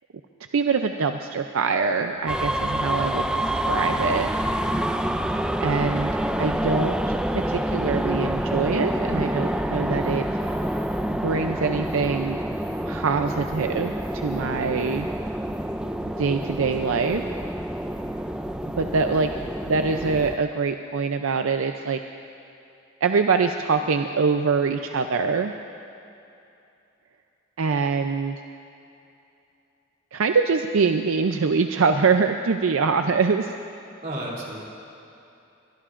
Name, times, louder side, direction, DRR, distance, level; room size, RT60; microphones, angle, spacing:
voice 1, 0.5-4.3 4.6-4.7 5.6-10.2 11.1-12.4 12.9-15.1 16.2-17.2 18.8-19.3 19.6-22.0 23.0-25.5 27.6-28.4 30.1-33.5, right 5 dB, 75° right, 6 dB, 0.5 m, -24 dB
sound 1, 2.3-20.4, right 1 dB, 5° right, 0.3 m, -27 dB
voice 2, 4.7-5.1 18.0-18.3 34.0-34.6, right 1 dB, 45° right, -4 dB, 3.0 m, -35 dB
22.0 x 21.5 x 2.5 m, 2.8 s
head